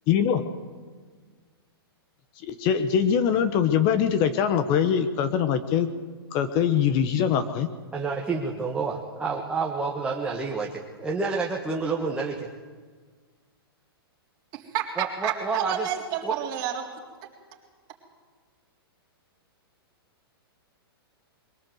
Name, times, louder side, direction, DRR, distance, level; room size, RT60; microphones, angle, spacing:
voice 1, 0.1-0.4 2.4-5.9 6.3-7.7, left 8 dB, 30° left, 10 dB, 1.2 m, -23 dB
voice 2, 7.9-12.5 15.0-15.9 16.2-16.4, right 4 dB, 10° right, -2 dB, 1.5 m, -29 dB
voice 3, 14.5-16.9, right 10 dB, 30° right, 1 dB, 3.6 m, -30 dB
22.5 x 17.5 x 8.0 m, 1.5 s
hypercardioid pair, 150°, 13 cm